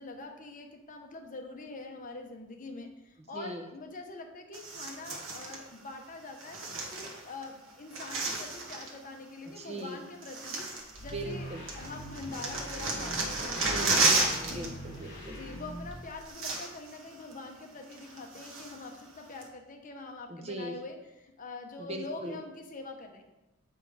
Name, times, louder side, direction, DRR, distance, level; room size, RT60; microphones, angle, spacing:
voice 1, 0.0-6.6 6.9-13.8 14.4-14.8 15.3-23.2, left 3 dB, 40° left, 3 dB, 0.9 m, -44 dB
voice 2, 3.3-3.6 9.6-10.0 11.1-11.7 13.6-15.4 20.3-20.8 21.8-22.4, right 1 dB, 30° right, 4 dB, 0.8 m, -40 dB
sound 1, 4.5-5.6 6.4-7.5 7.7-9.0 9.8-9.9 10.2-11.4 11.7-14.7 14.9-15.2 15.9-16.0 16.2-17.0 17.3-17.4 17.9-18.9 19.4-19.5, right 3 dB, 70° right, 1.3 m, -32 dB
sound 2, 10.8-16.3, equal, 55° left, 2.3 m, -43 dB
7.4 x 5.1 x 4.8 m, 0.95 s
head